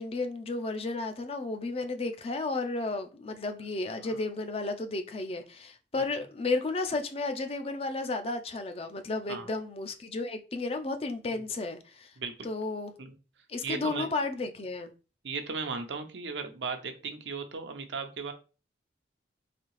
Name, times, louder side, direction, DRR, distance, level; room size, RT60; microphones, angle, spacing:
voice 1, 0.0-12.1 12.4-12.9 13.5-14.9, left 3 dB, 35° left, 0.4 m, -33 dB
voice 2, 13.6-14.1 15.2-18.3, right 4 dB, 85° right, 0.7 m, -36 dB
4.1 x 2.7 x 3.1 m
head